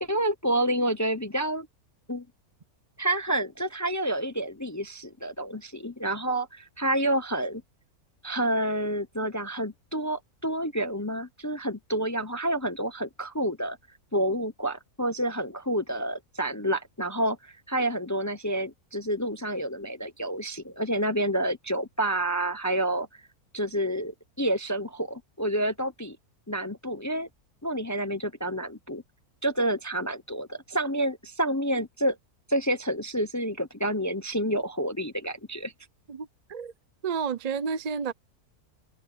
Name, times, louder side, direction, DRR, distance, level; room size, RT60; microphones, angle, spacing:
voice 1, 0.0-1.7 2.1-2.2 3.0-7.6 8.2-13.8 14.1-23.1 23.5-26.2 26.5-27.3 27.6-29.0 29.4-32.2 32.5-35.7, right 1 dB, 20° left, 0.5 m, -29 dB
voice 2, 36.1-36.7 37.0-38.1, right 6 dB, 45° right, 0.5 m, -31 dB
omnidirectional pair, 1.6 m